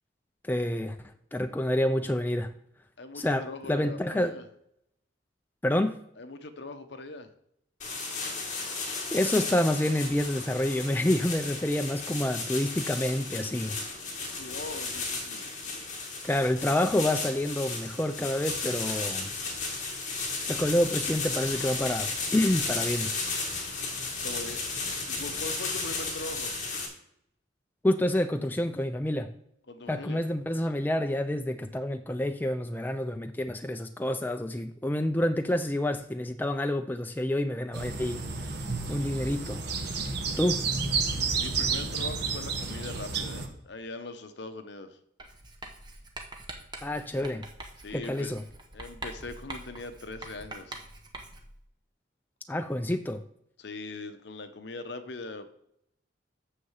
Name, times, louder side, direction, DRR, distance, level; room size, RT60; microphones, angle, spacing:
voice 1, 0.4-1.0 1.3-2.5 3.1-4.3 5.6-6.0 9.1-13.8 16.2-19.3 20.4-23.1 27.8-29.3 29.9-38.2 38.9-39.6 40.4-40.6 46.8-47.4 47.9-48.4 52.5-53.2, left 1 dB, 10° left, 7 dB, 0.3 m, -28 dB
voice 2, 3.0-4.5 6.2-7.3 14.4-15.5 24.2-24.6 25.1-26.5 29.7-30.3 41.4-45.0 47.8-48.4 48.7-50.8 53.6-55.5, left 2 dB, 60° left, 9 dB, 0.8 m, -41 dB
sound 1, 7.8-26.9, left 3 dB, 40° left, 2.2 m, -34 dB
sound 2, 37.7-43.5, right 4 dB, 55° right, 1.3 m, -31 dB
Writing, 45.2-51.6, right 2 dB, 20° right, 0.9 m, -44 dB
6.6 x 6.5 x 7.2 m, 0.76 s
head